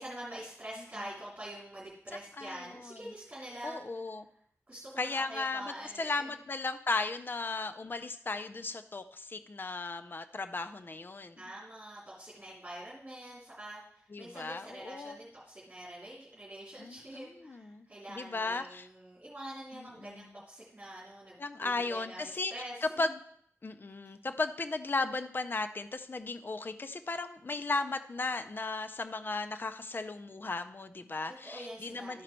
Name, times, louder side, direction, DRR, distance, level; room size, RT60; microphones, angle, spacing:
voice 1, 0.0-3.8 4.7-6.4 11.4-23.1 31.4-32.2, right 1 dB, 30° right, -8 dB, 2.9 m, -46 dB
voice 2, 2.4-3.0 3.6-4.3 5.0-11.4 14.1-15.2 16.8-18.9 19.7-20.4 21.4-22.5 22.8-23.2 23.6-32.2, left 3 dB, 40° left, 9 dB, 0.5 m, -36 dB
13.0 x 5.1 x 4.4 m, 0.66 s
wide cardioid pair, 90°, 5 cm